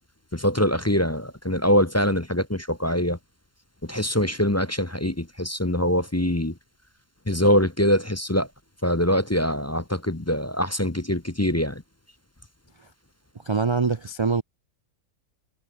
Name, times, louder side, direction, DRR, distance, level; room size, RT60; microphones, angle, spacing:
voice 1, 0.3-3.2 3.9-6.5 7.3-8.5 8.8-11.7, equal, 10° left, 0.9 m, -23 dB
voice 2, 13.4-14.4, right 4 dB, 35° right, 0.4 m, -23 dB
omnidirectional pair, 1.6 m